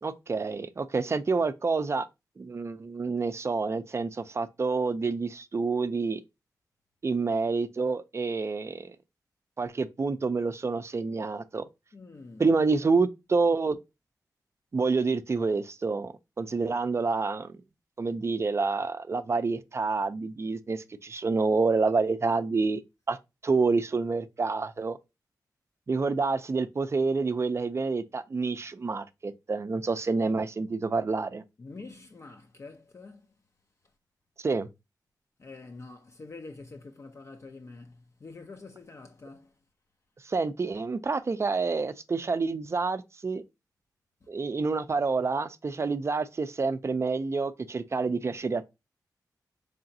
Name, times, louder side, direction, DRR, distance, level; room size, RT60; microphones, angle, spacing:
voice 1, 0.0-2.1 2.4-6.2 7.0-9.0 9.6-11.6 12.4-13.8 14.7-17.6 18.0-22.8 23.1-23.2 23.4-25.0 25.9-31.4 34.4-34.7 40.2-43.4 44.3-48.7, right 4 dB, 40° right, 0.4 m, -28 dB
voice 2, 11.9-12.5 31.6-33.3 35.4-39.6 44.2-44.3, left 3 dB, 45° left, 0.5 m, -46 dB
3.8 x 3.3 x 2.6 m
cardioid pair, 65°, 7 cm